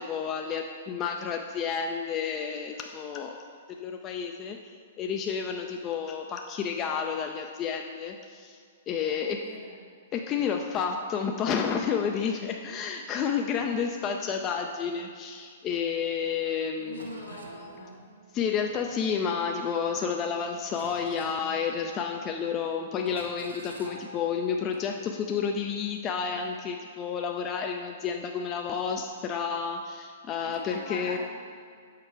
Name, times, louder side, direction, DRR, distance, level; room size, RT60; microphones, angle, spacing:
voice 1, 0.0-4.6 5.0-8.6 8.9-9.4 10.1-17.1 18.3-31.2, left 6 dB, 30° left, 3 dB, 0.4 m, -30 dB
voice 2, 9.0-9.8 16.8-18.0 30.4-31.2, left 1 dB, 80° left, -1 dB, 1.3 m, -42 dB
sound 1, 16.5-16.6 16.9-19.4 19.9-20.3 20.7-22.3 22.6-22.8 23.1-24.9, right 2 dB, 85° right, 0.9 m, -48 dB
6.6 x 4.8 x 4.6 m, 2.1 s
hypercardioid pair, 115°, 0 cm